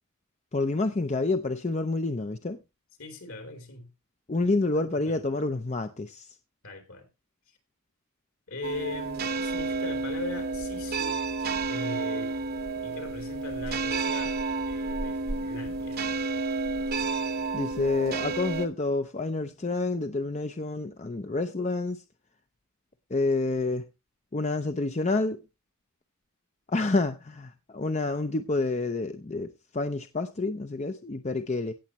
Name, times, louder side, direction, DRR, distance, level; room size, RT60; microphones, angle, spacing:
voice 1, 0.5-2.6 4.3-6.3 17.5-22.0 23.1-23.9 24.3-25.4 26.7-31.7, left 3 dB, 30° left, 0.6 m, -28 dB
voice 2, 3.0-3.9 4.7-5.2 6.6-7.1 8.5-11.2 11.7-12.4 12.8-14.4 14.7-16.1, left 2 dB, 70° left, 3.4 m, -40 dB
sound 1, 8.6-18.7, right 3 dB, 45° right, 0.9 m, -30 dB
17.5 x 7.2 x 3.0 m
head